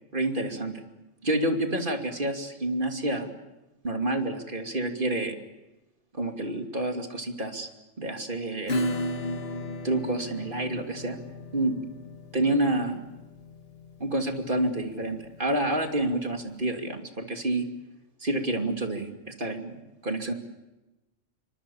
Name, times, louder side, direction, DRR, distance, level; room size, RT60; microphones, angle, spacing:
voice 1, 0.1-0.8 1.2-3.3 3.8-5.3 6.1-7.7 8.0-8.8 9.8-11.2 11.5-11.8 12.3-13.1 14.0-17.7 18.2-20.3, right 1 dB, 45° right, 4 dB, 3.0 m, -28 dB
Acoustic guitar / Strum, 8.7-15.9, left 1 dB, 50° left, 2.0 m, -35 dB
28.5 x 25.0 x 7.2 m, 1.0 s
omnidirectional pair, 1.3 m